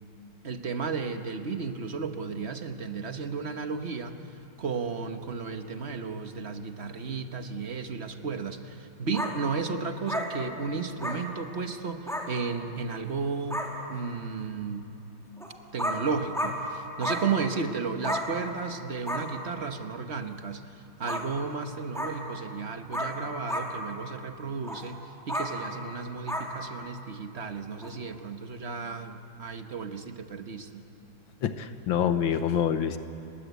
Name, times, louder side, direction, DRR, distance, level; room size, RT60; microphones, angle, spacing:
voice 1, 0.4-4.3 4.6-14.9 15.7-30.8, right 5 dB, 40° right, 7 dB, 1.3 m, -34 dB
sound 1, 9.1-9.3 10.1-10.2 11.0-11.2 12.1-12.2 13.1-13.2 13.5-13.7 15.4-15.5 15.8-16.0 16.3-16.5 17.0-17.2 18.0-18.2 19.0-19.2 21.1-21.2 21.9-22.1 22.9-23.1 23.5-23.7 24.6-24.8 25.3-25.5 26.3-26.5 27.8-27.9, equal, ahead, 3.5 m, -31 dB
voice 2, 31.4-33.0, left 8 dB, 80° left, 10 dB, 1.8 m, -26 dB
29.0 x 20.5 x 8.3 m, 2.7 s
omnidirectional pair, 2.1 m